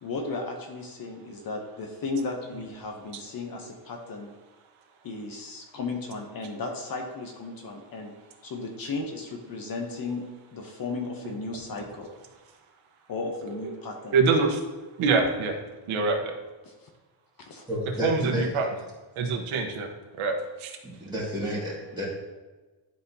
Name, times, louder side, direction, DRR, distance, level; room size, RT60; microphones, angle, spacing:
voice 1, 0.0-4.3 5.0-8.1 8.4-10.2 10.5-12.1 13.1-14.2 16.6-16.9 17.4-17.6, left 3 dB, 45° left, 2 dB, 0.9 m, -35 dB
voice 2, 14.1-14.6 15.0-15.5 15.9-16.3 18.0-18.7 19.2-19.9 20.2-20.8, right 4 dB, 75° right, 2 dB, 1.2 m, -25 dB
voice 3, 17.7-18.5 20.8-22.0, equal, 10° right, -7 dB, 2.0 m, -31 dB
11.5 x 4.1 x 2.8 m, 1.2 s
cardioid pair, 165°, 49 cm